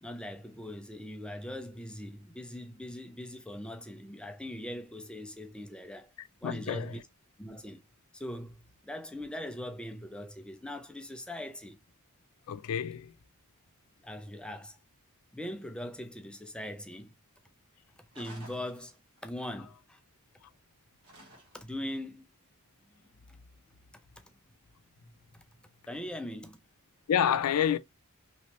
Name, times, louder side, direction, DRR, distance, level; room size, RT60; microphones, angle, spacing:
voice 1, 0.0-6.1 6.4-7.0 7.4-7.8 8.1-11.8 14.0-14.8 15.3-17.1 18.2-18.9 19.2-20.0 21.5-22.2 23.3-23.4 25.9-26.6, left 1 dB, 5° left, 0.4 m, -41 dB
voice 2, 6.2-6.9 12.5-13.1 27.1-27.8, left 9 dB, 90° left, 0.4 m, -29 dB
sound 1, 18.1-19.3 21.0-21.8, right 1 dB, 90° right, 1.4 m, -52 dB
3.1 x 3.0 x 2.9 m
head